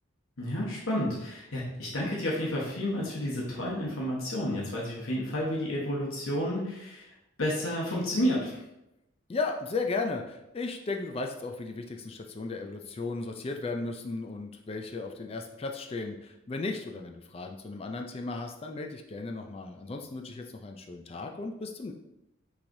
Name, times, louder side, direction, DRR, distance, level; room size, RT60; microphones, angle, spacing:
voice 1, 0.4-8.6, equal, 85° left, -4 dB, 1.1 m, -31 dB
voice 2, 9.3-21.9, left 3 dB, 30° left, 4 dB, 0.3 m, -35 dB
6.0 x 3.3 x 2.6 m, 0.89 s
head